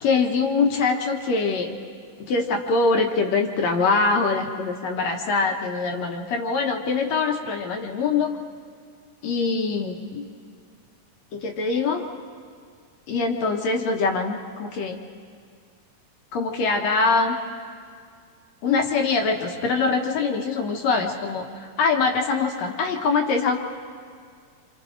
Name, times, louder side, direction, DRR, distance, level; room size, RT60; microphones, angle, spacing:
voice 1, 0.0-1.7 2.3-8.3 9.2-10.3 11.3-12.0 13.1-15.0 16.3-17.4 18.6-23.6, left 4 dB, 65° left, 2 dB, 2.2 m, -23 dB
27.0 x 27.0 x 3.8 m, 2.1 s
omnidirectional pair, 3.7 m